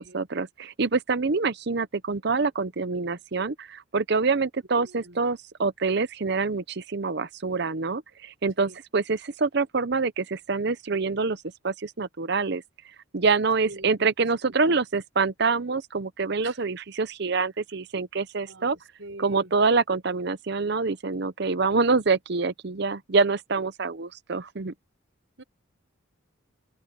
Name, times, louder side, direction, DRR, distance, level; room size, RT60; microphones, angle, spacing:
voice 1, 0.0-12.6 13.1-18.8 19.2-24.7, right 4 dB, 55° right, 0.7 m, -26 dB
voice 2, 4.8-5.2 8.6-8.8 13.6-14.3 14.6-14.8 16.4-16.6 18.4-19.5 25.4-25.5, right 2 dB, 70° right, 4.9 m, -44 dB
head